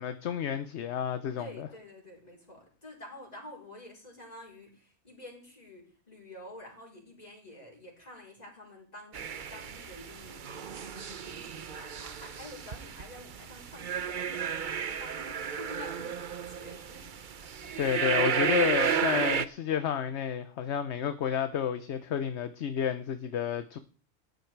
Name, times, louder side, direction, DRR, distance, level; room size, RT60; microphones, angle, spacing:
voice 1, 0.0-1.7 17.8-23.8, left 9 dB, 65° left, 1.0 m, -31 dB
voice 2, 1.4-17.1, left 1 dB, 30° left, 4.7 m, -49 dB
sound 1, 9.1-19.5, right 7 dB, 45° right, 0.8 m, -33 dB
13.5 x 10.5 x 4.6 m
omnidirectional pair, 1.3 m